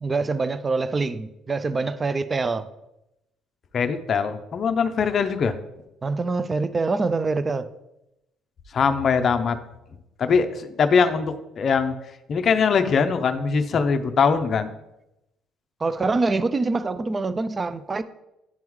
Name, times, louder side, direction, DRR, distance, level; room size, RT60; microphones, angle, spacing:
voice 1, 0.0-2.7 6.0-7.7 15.8-18.0, right 3 dB, 20° right, 0.3 m, -25 dB
voice 2, 3.7-5.5 8.7-9.6 10.2-11.9 12.3-14.7, left 5 dB, 40° left, 0.5 m, -22 dB
10.5 x 3.6 x 3.1 m
cardioid pair, 140°, 0 cm